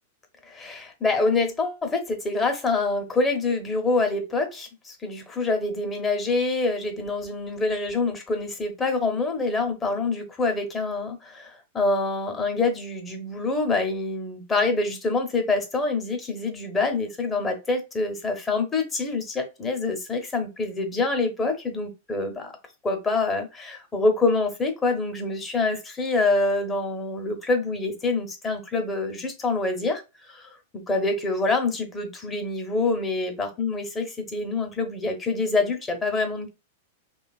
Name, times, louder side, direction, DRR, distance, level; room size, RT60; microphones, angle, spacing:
voice 1, 0.4-22.5 22.8-30.0 30.3-36.5, left 3 dB, 20° left, 4 dB, 0.8 m, -26 dB
2.8 x 2.3 x 2.3 m, 0.26 s
hypercardioid pair, 100°, 0 cm